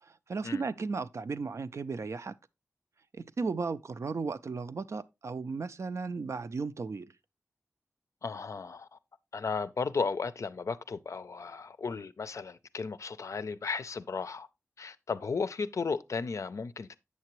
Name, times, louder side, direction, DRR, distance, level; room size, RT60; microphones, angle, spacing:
voice 1, 0.0-2.4 3.1-7.1, right 4 dB, 65° right, 0.4 m, -35 dB
voice 2, 8.2-9.0 9.3-14.5 14.8-16.9, left 4 dB, 75° left, 0.4 m, -35 dB
8.2 x 6.7 x 3.0 m
wide cardioid pair, 95°, 5 cm